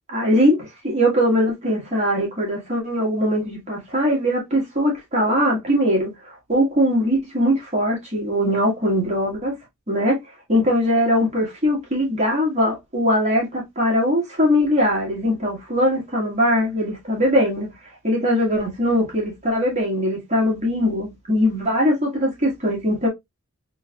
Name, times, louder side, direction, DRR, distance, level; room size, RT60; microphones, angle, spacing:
voice 1, 0.1-9.5 9.9-10.2 10.5-17.7 18.0-23.1, equal, 30° right, 1.8 m, -21 dB
3.8 x 3.2 x 2.3 m
head